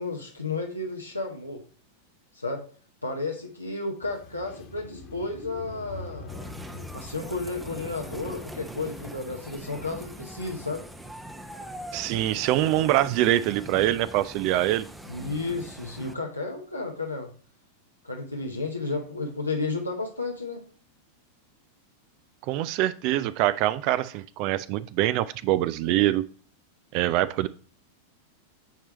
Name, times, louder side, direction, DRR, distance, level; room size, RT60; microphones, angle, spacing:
voice 1, 0.0-1.6 2.3-2.6 3.0-6.5 6.9-10.8 15.1-17.3 18.0-20.6, left 3 dB, 85° left, 0 dB, 0.9 m, -32 dB
sound 1, 4.0-9.5, left 4 dB, 40° left, 1.3 m, -44 dB
sound 2, 6.3-16.1, right 1 dB, 5° right, 0.7 m, -42 dB
voice 2, 11.9-14.8 22.4-26.2 26.9-27.5, right 14 dB, 45° right, 15 dB, 0.3 m, -24 dB
9.1 x 4.6 x 3.1 m, 0.42 s
figure-of-eight pair, 90°, 0 cm